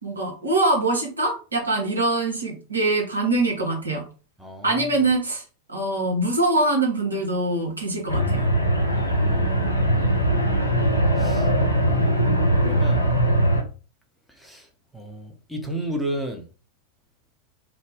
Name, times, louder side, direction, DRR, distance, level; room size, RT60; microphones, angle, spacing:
voice 1, 0.0-4.0 4.6-5.4 5.7-8.5, right 2 dB, 80° right, 0.9 m, -23 dB
voice 2, 4.4-4.9 8.9-9.5 9.9-10.2 11.2-12.2 12.6-13.1 14.3-16.5, right 1 dB, ahead, 0.7 m, -34 dB
sound 1, 8.1-13.6, right 1 dB, 85° left, 0.5 m, -21 dB
2.6 x 2.0 x 3.4 m
figure-of-eight pair, 90°, 0 cm